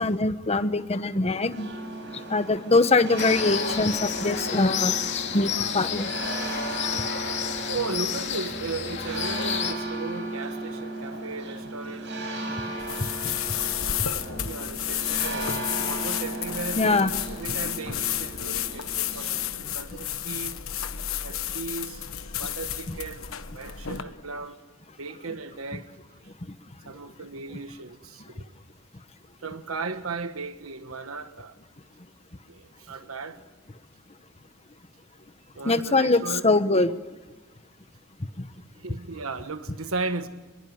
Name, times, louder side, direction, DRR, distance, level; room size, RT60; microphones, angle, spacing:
voice 1, 0.0-1.7 2.3-5.0 5.3-6.1 16.8-17.1 35.6-37.0 38.4-38.5, left 3 dB, 30° left, 1.1 m, -23 dB
sound 1, 1.5-19.5, right 2 dB, 55° right, 6.8 m, -36 dB
sound 2, 3.2-9.7, left 8 dB, 55° left, 2.5 m, -30 dB
voice 2, 7.7-12.2 13.9-20.5 21.2-22.0 22.4-23.3 23.5-24.6 25.0-25.9 26.8-28.5 29.4-31.6 32.5-33.4 35.5-36.4 38.7-40.3, right 4 dB, 75° right, 1.3 m, -36 dB
sound 3, 12.8-24.0, left 10 dB, 70° left, 1.3 m, -31 dB
25.0 x 23.5 x 9.6 m
head